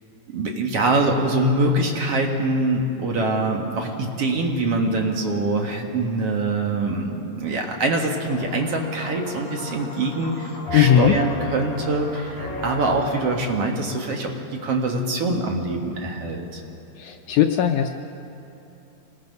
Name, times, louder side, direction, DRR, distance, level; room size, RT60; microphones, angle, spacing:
voice 1, 0.3-16.6, right 2 dB, 50° right, 1 dB, 2.1 m, -24 dB
sound 1, 8.2-13.3, left 2 dB, 55° left, 5.6 m, -34 dB
voice 2, 10.7-11.1 17.0-17.9, left 10 dB, 80° left, 5 dB, 1.8 m, -18 dB
26.5 x 19.5 x 5.4 m, 2.9 s
omnidirectional pair, 4.2 m